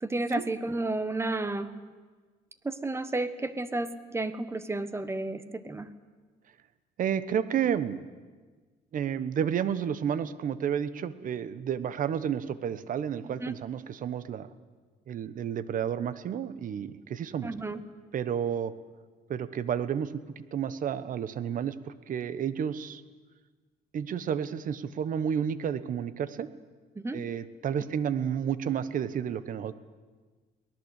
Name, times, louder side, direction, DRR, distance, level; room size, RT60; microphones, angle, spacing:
voice 1, 0.0-1.7 2.6-5.9 13.4-13.5 17.4-17.8 26.9-27.2 27.8-27.9, right 2 dB, 15° right, 13 dB, 1.4 m, -32 dB
voice 2, 7.0-8.0 8.9-14.5 15.1-17.5 18.1-18.7 19.3-21.7 22.1-23.0 23.9-26.5 27.1-29.7, right 8 dB, 50° right, 15 dB, 1.2 m, -31 dB
23.0 x 18.0 x 8.3 m, 1.4 s
cardioid pair, 110°, 17 cm